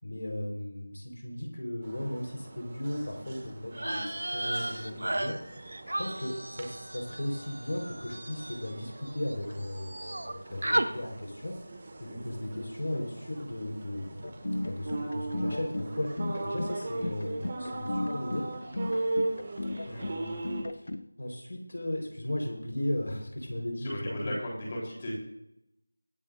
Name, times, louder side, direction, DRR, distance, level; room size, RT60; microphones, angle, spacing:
voice 1, 0.0-5.3 6.0-11.5 12.0-18.5 19.9-20.9 21.2-24.4, left 1 dB, 65° left, 1 dB, 4.7 m, -36 dB
sound 1, 1.8-20.6, right 2 dB, 25° right, 2.2 m, -39 dB
sound 2, 3.7-9.3 9.6-10.3 10.6-10.9, right 1 dB, 80° right, 1.2 m, -34 dB
sound 3, 14.2-21.1, left 1 dB, 50° left, 0.8 m, -35 dB
voice 2, 23.8-25.1, left 1 dB, 20° left, -4 dB, 4.0 m, -36 dB
24.5 x 9.1 x 2.7 m, 0.79 s
figure-of-eight pair, 180°, 0 cm